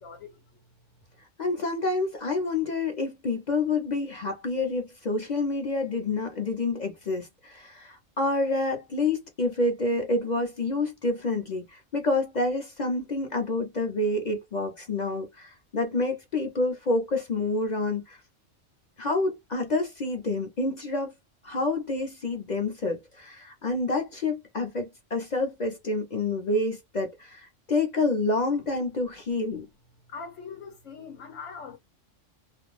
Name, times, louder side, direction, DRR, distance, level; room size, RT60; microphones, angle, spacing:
voice 1, 0.0-0.6 30.1-31.8, left 5 dB, 80° left, 1.0 m, -42 dB
voice 2, 1.4-18.2 19.0-21.1 21.4-29.7, left 2 dB, 45° left, 0.6 m, -28 dB
2.5 x 2.1 x 3.1 m
omnidirectional pair, 1.3 m